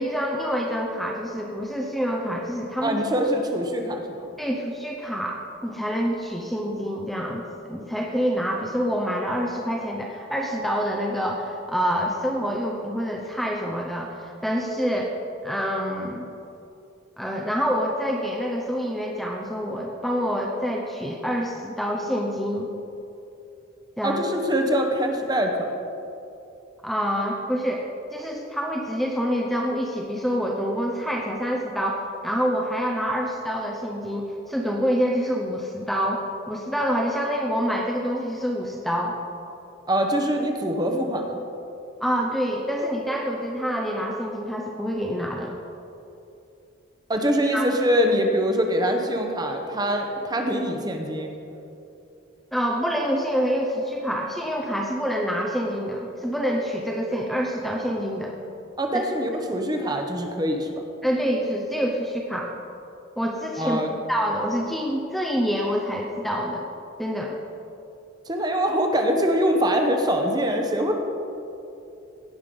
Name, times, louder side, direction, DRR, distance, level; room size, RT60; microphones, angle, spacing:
voice 1, 0.0-3.0 4.4-15.1 15.4-16.3 17.2-22.7 24.0-24.2 26.8-27.8 28.1-39.2 42.0-45.5 47.5-47.7 52.5-58.3 58.9-59.0 61.0-62.5 63.2-63.8 64.1-66.7 67.0-67.4, equal, ahead, -1 dB, 0.7 m, -27 dB
voice 2, 2.8-4.3 24.0-25.7 39.9-41.4 47.1-51.3 58.8-60.7 63.6-64.0 68.3-70.9, equal, 20° right, 3 dB, 0.9 m, -24 dB
17.0 x 5.7 x 5.3 m, 2.8 s
head